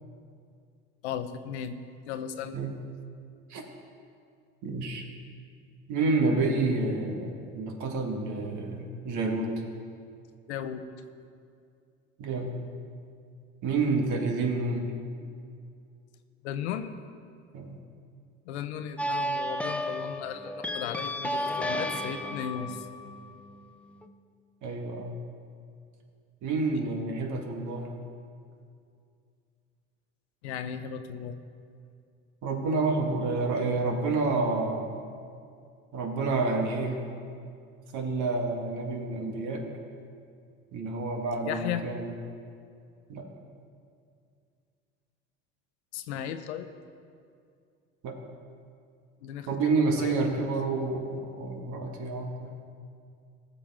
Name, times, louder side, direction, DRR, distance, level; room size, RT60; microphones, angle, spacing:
voice 1, 1.0-1.8 2.1-2.6 10.5-10.8 16.4-16.9 18.5-22.9 30.4-31.4 41.4-41.8 45.9-46.7 49.2-50.4, left 9 dB, 80° left, 9 dB, 0.8 m, -36 dB
voice 2, 4.6-5.0 5.9-9.5 12.2-12.6 13.6-14.9 17.5-17.8 24.6-25.2 26.4-27.9 32.4-35.0 35.9-37.0 37.9-39.6 40.7-42.1 43.1-43.3 48.0-48.2 49.5-52.5, right 3 dB, 60° right, 3 dB, 1.7 m, -29 dB
sound 1, 19.0-24.1, equal, 5° left, 0.6 m, -33 dB
18.0 x 7.0 x 3.6 m, 2.3 s
hypercardioid pair, 70°, 33 cm